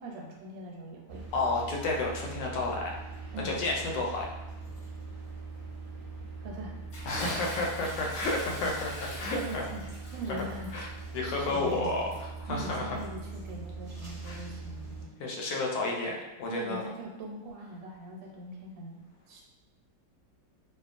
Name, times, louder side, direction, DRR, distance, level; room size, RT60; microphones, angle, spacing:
voice 1, 0.0-1.3 3.3-3.5 6.4-6.7 9.3-9.9 10.1-10.7 11.5-12.1 12.5-15.1 16.5-19.0 19.3-19.4, right 2 dB, 85° right, -1 dB, 1.3 m, -41 dB
sound 1, 1.1-15.1, right 3 dB, 35° right, 0.9 m, -42 dB
voice 2, 1.3-2.9 3.4-4.3 7.0-9.6 10.7-10.9 11.1-13.0 14.2-14.4 15.2-16.8, left 2 dB, 80° left, -1 dB, 1.2 m, -31 dB
Bathtub (filling or washing) / Splash splatter, 6.9-13.5, left 1 dB, 60° left, 1.0 m, -42 dB
2.8 x 2.3 x 2.4 m, 1.0 s
omnidirectional pair, 1.9 m